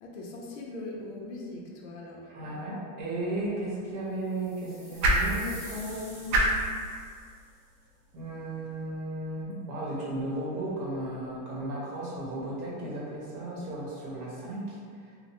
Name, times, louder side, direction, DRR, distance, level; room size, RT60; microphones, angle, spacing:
voice 1, 0.0-2.7, left 2 dB, 55° left, -2 dB, 0.6 m, -41 dB
voice 2, 2.3-6.4 8.1-14.8, right 1 dB, 85° right, -5 dB, 1.1 m, -35 dB
sound 1, 3.2-9.4, right 1 dB, 60° right, 0.6 m, -32 dB
sound 2, 4.3-7.5, equal, 10° right, 0.7 m, -49 dB
2.8 x 2.1 x 2.9 m, 2.1 s
supercardioid pair, 170°, 44 cm